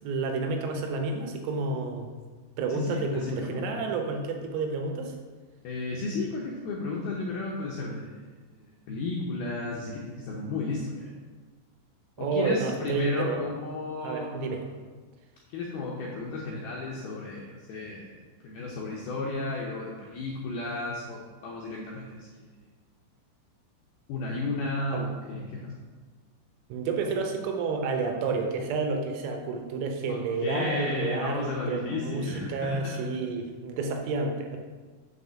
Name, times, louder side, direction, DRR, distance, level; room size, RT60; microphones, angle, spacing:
voice 1, 0.0-2.1 2.6-5.2 12.2-13.4 14.0-14.6 24.9-25.0 26.7-34.6, right 3 dB, 80° right, 3 dB, 3.4 m, -30 dB
voice 2, 2.7-3.8 5.6-8.2 8.5-11.1 12.2-14.6 15.5-18.2 18.4-22.5 24.1-25.8 30.1-33.1, left 3 dB, 80° left, -3 dB, 2.2 m, -33 dB
7.0 x 5.4 x 6.8 m, 1.4 s
omnidirectional pair, 5.6 m